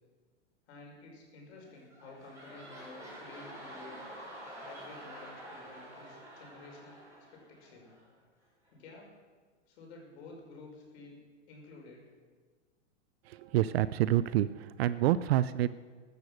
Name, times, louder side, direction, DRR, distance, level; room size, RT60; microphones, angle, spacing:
voice 1, 0.7-4.1 4.6-7.9 8.7-9.1 9.7-11.2 11.5-12.1, left 3 dB, 55° left, 0 dB, 5.8 m, -52 dB
sound 1, 1.6-8.1 8.7-8.8, right 1 dB, 10° right, 6.3 m, -48 dB
voice 2, 13.3-15.7, right 13 dB, 55° right, 16 dB, 0.6 m, -28 dB
16.0 x 12.5 x 6.5 m, 1.5 s
hypercardioid pair, 125°, 38 cm